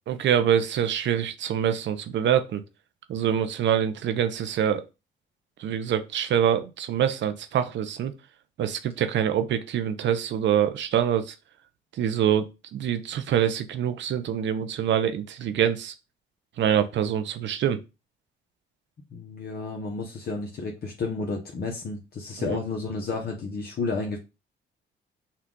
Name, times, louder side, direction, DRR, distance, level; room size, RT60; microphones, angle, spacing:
voice 1, 0.1-2.6 3.1-4.8 5.6-8.1 8.6-11.3 12.0-15.9 16.6-17.8 22.5-22.6, right 9 dB, 65° right, 10 dB, 0.6 m, -25 dB
voice 2, 19.1-24.2, left 3 dB, 50° left, 0 dB, 0.9 m, -31 dB
5.6 x 2.4 x 3.7 m, 0.28 s
cardioid pair, 90°, 20 cm